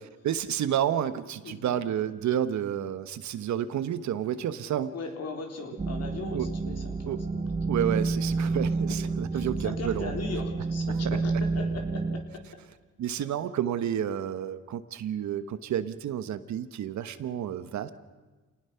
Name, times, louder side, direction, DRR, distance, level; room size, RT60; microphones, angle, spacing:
voice 1, 0.2-4.9 6.3-6.5 7.1-7.2 7.7-10.1 11.0-11.2 13.0-17.9, right 10 dB, 70° right, 12 dB, 1.1 m, -30 dB
voice 2, 1.4-1.8 4.9-7.4 9.3-12.4 13.2-13.3, left 4 dB, 55° left, 3 dB, 3.8 m, -39 dB
sound 1, 5.8-12.2, right 3 dB, 25° right, 1.5 m, -29 dB
27.0 x 19.0 x 5.7 m, 1.3 s
cardioid pair, 90°, 30 cm